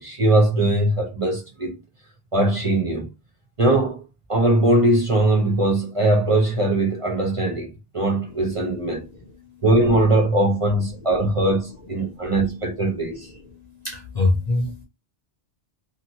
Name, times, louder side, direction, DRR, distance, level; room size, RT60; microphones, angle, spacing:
voice 1, 0.0-1.7 2.3-3.1 3.6-4.0 4.3-9.0 9.6-13.3, right 1 dB, 35° right, 0.6 m, -20 dB
voice 2, 13.8-14.8, left 2 dB, 50° left, 0.5 m, -22 dB
2.6 x 2.6 x 2.8 m
omnidirectional pair, 1.2 m